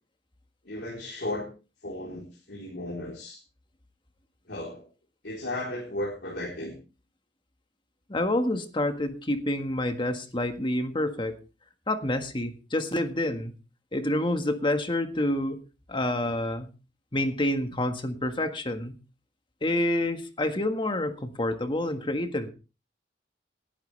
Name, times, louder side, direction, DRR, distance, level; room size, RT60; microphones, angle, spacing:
voice 1, 0.7-1.5 1.8-3.4 4.5-4.8 5.2-6.7, left 1 dB, 70° left, -2 dB, 4.1 m, -35 dB
voice 2, 8.1-11.4 11.9-13.5 13.9-15.6 15.9-16.7 17.1-18.9 19.6-22.5, left 1 dB, 30° left, 7 dB, 1.7 m, -28 dB
18.5 x 12.0 x 3.4 m, 0.32 s
head